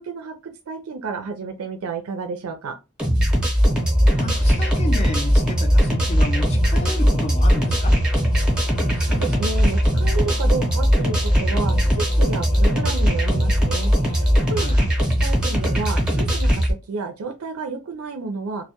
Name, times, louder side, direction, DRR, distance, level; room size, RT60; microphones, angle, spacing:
voice 1, 0.0-2.8 8.6-18.7, right 4 dB, 75° right, 0.4 m, -31 dB
sound 1, 3.0-16.7, equal, 5° right, 0.7 m, -19 dB
Singing / Musical instrument, 3.5-16.1, left 3 dB, 70° left, 0.6 m, -39 dB
voice 2, 4.2-8.0 14.5-14.8, left 2 dB, 30° left, 0.4 m, -32 dB
2.2 x 2.1 x 2.8 m
head